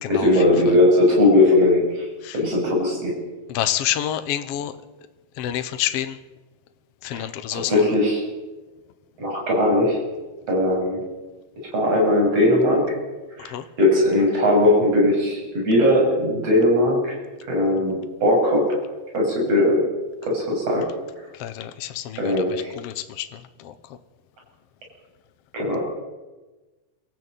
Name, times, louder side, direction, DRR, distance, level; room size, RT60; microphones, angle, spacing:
voice 1, 0.1-2.0 2.3-3.2 7.1-7.3 7.5-8.2 9.2-10.0 10.5-11.0 11.7-12.9 13.4-13.5 13.8-17.2 17.5-18.8 19.1-19.8 20.2-20.9 22.2-22.7 25.5-25.8, left 1 dB, 55° right, -1 dB, 8.6 m, -19 dB
voice 2, 3.5-4.7 5.4-6.1 7.0-7.7 13.5-13.6 21.4-22.3 22.8-23.3, left 12 dB, 65° left, 10 dB, 1.9 m, -27 dB
24.0 x 14.0 x 9.2 m, 1.2 s
omnidirectional pair, 3.3 m